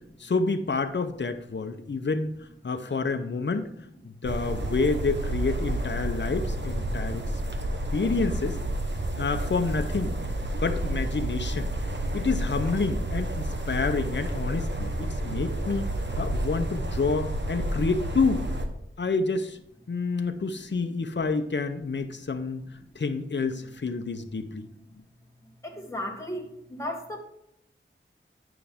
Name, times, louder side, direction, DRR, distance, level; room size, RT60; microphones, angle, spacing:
voice 1, 0.2-3.7 4.0-7.2 7.9-8.6 9.2-10.1 10.6-11.7 12.1-15.9 16.2-18.4 19.0-19.6 19.9-22.6 22.9-24.7, left 4 dB, 60° left, 7 dB, 0.7 m, -28 dB
sound 1, 4.2-18.7, right 1 dB, 55° right, 1.1 m, -30 dB
voice 2, 25.6-27.2, left 1 dB, 15° left, -1 dB, 1.6 m, -35 dB
9.2 x 5.7 x 3.5 m, 0.81 s
wide cardioid pair, 55°, 21 cm